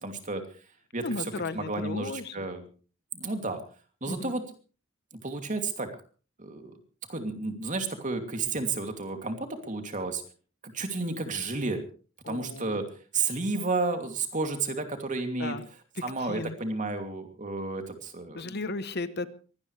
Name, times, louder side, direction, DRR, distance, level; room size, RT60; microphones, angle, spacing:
voice 1, 0.0-0.4 0.9-2.6 3.1-3.6 4.0-4.4 5.2-5.9 6.4-6.8 7.1-10.2 10.6-11.8 12.3-12.9 13.1-15.6 16.0-18.6, right 3 dB, 35° right, 5 dB, 2.7 m, -32 dB
voice 2, 1.0-2.5 4.1-4.3 12.2-12.8 15.4-15.6 16.2-16.6 18.3-19.3, left 3 dB, 50° left, 13 dB, 1.0 m, -35 dB
23.0 x 17.5 x 3.3 m, 0.38 s
head